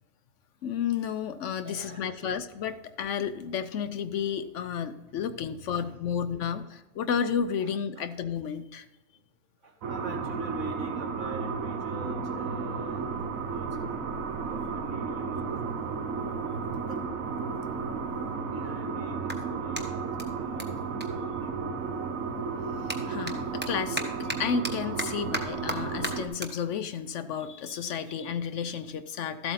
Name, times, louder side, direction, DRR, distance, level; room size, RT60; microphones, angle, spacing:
voice 1, 0.6-8.9 23.1-29.5, left 7 dB, 70° left, 11 dB, 0.9 m, -32 dB
voice 2, 1.6-2.4 5.7-5.8 7.6-8.1 9.6-13.1 13.5-14.0 14.4-15.9 16.9-17.0 18.1-21.6, right 2 dB, 60° right, -1 dB, 2.3 m, -44 dB
sound 1, 9.8-26.3, right 5 dB, 80° right, 1.3 m, -33 dB
Clapping, 18.4-22.0 22.3-28.9, right 1 dB, 10° right, 1.0 m, -39 dB
13.5 x 8.0 x 4.0 m, 1.1 s
omnidirectional pair, 1.4 m